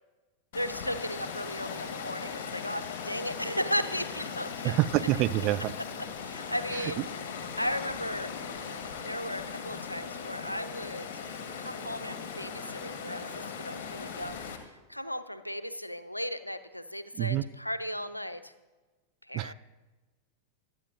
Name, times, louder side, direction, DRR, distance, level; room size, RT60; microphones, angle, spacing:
voice 1, 0.5-4.8 6.2-7.0 7.6-8.3 9.0-11.1 11.5-18.5 19.3-19.5, equal, 85° left, 12 dB, 0.6 m, -36 dB
Water, 0.5-14.6, left 6 dB, 50° left, 1.5 m, -39 dB
voice 2, 4.6-5.7 6.7-7.0 17.1-17.4 19.3-19.5, right 16 dB, 40° right, 15 dB, 0.3 m, -27 dB
24.5 x 8.6 x 2.6 m, 1.2 s
figure-of-eight pair, 90°, 0 cm